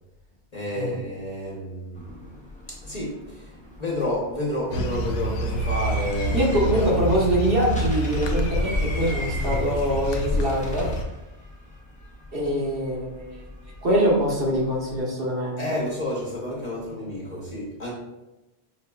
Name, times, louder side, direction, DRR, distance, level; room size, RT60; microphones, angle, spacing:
voice 1, 0.5-2.2 2.7-6.4 6.7-6.9 15.6-17.9, left 1 dB, 40° left, -5 dB, 0.8 m, -30 dB
sound 1, 1.9-15.0, equal, 10° left, 0.4 m, -42 dB
sound 2, 4.7-11.0, equal, 85° left, 0.9 m, -27 dB
voice 2, 6.3-10.9 12.3-13.4 13.8-15.6, equal, 55° right, -4 dB, 1.1 m, -24 dB
5.1 x 2.8 x 2.2 m, 0.97 s
omnidirectional pair, 1.2 m